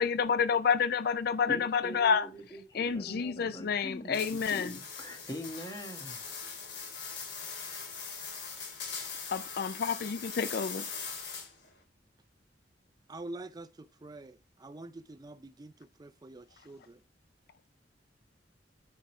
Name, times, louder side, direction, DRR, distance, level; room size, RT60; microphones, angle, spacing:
voice 1, 0.0-2.3 2.7-4.8 9.3-10.9, left 6 dB, 60° left, 0.4 m, -29 dB
voice 2, 1.5-6.3, equal, 25° left, 1.7 m, -43 dB
sound 1, 4.1-11.7, left 5 dB, 85° left, 2.9 m, -41 dB
voice 3, 13.1-17.0, right 2 dB, 20° right, 0.4 m, -46 dB
9.5 x 5.4 x 3.2 m
head